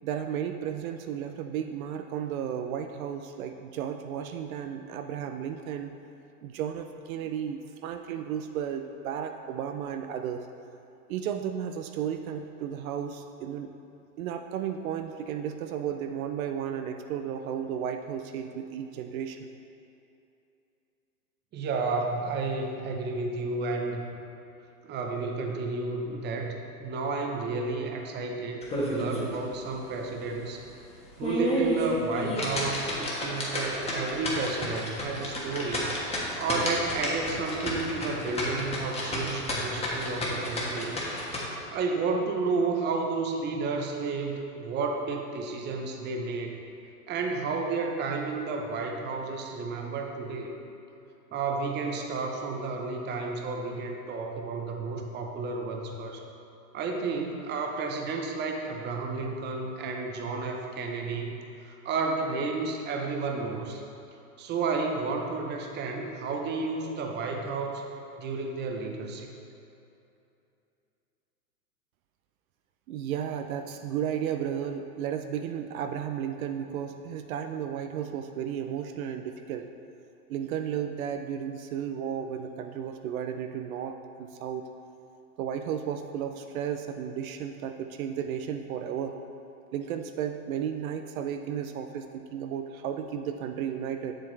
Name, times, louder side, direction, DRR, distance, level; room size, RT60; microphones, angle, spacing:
voice 1, 0.0-5.9 6.4-10.4 11.1-13.7 14.2-19.5 72.9-79.7 80.3-84.7 85.4-89.2 89.7-94.1, right 8 dB, 65° right, 6 dB, 0.6 m, -34 dB
voice 2, 21.5-24.0 24.8-30.6 31.2-41.0 41.7-46.6 47.1-50.5 51.3-56.2 56.7-63.8 64.4-67.8 68.2-69.3, right 4 dB, 25° right, 2 dB, 0.7 m, -31 dB
sound 1, 28.6-29.4 29.7-29.8 30.3-30.4 31.0-41.4, left 1 dB, 15° left, 1.3 m, -31 dB
7.5 x 6.9 x 3.2 m, 2.8 s
hypercardioid pair, 120°, 45 cm